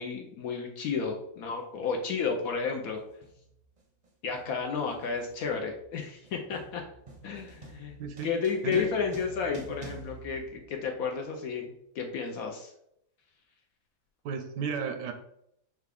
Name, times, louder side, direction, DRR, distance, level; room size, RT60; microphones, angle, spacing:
voice 1, 0.0-3.0 4.2-6.8 7.2-8.0 8.2-12.7, left 5 dB, 70° left, 2 dB, 0.9 m, -32 dB
sound 1, 1.0-1.2 2.1-2.4 2.7-11.2, right 2 dB, 40° right, 0.6 m, -49 dB
voice 2, 8.0-8.3 8.6-8.9 14.2-15.1, right 6 dB, 80° right, 6 dB, 1.3 m, -33 dB
5.8 x 2.3 x 3.4 m, 0.75 s
omnidirectional pair, 1.8 m